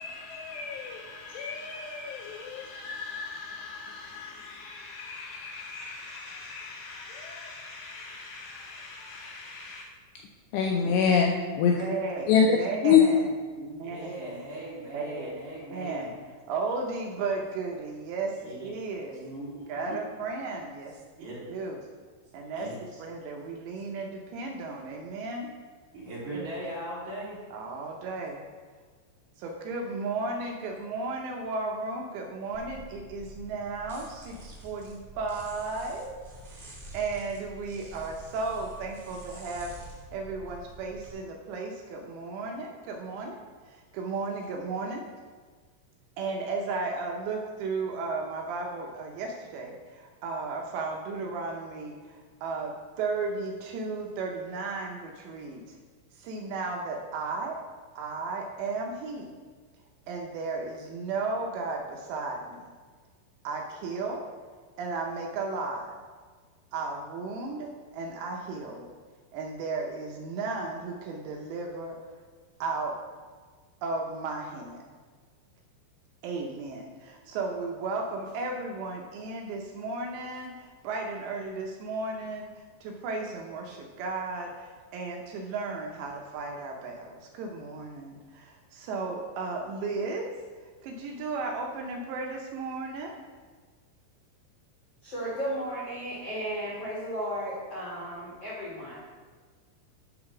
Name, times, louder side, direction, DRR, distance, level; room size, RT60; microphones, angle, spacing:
voice 1, 0.0-9.8 10.5-11.8 12.3-12.6 12.8-13.0, left 7 dB, 80° left, 0 dB, 2.5 m, -29 dB
voice 2, 11.7-13.3 13.6-14.4 14.9-15.3 15.7-16.1 16.5-19.2 19.7-21.8 22.3-25.5 26.3-26.4 27.5-28.4 29.4-36.1 36.4-45.0 46.2-55.8 56.1-57.6 58.0-59.3 60.1-62.7 63.4-64.2 64.8-65.9 66.7-68.9 69.3-72.0 72.6-73.0 73.8-74.8 76.2-90.3 90.6-93.1, right 3 dB, 80° right, 1 dB, 2.8 m, -34 dB
voice 3, 13.8-16.2 18.4-18.7 19.1-20.0 21.2-21.4 22.5-23.0 25.9-27.4, right 1 dB, 45° right, -8 dB, 3.7 m, -39 dB
sound 1, 32.5-41.1, right 1 dB, 25° right, 1.1 m, -47 dB
voice 4, 95.0-99.0, equal, 55° left, -7 dB, 1.7 m, -34 dB
10.5 x 4.1 x 5.9 m, 1.5 s
omnidirectional pair, 5.5 m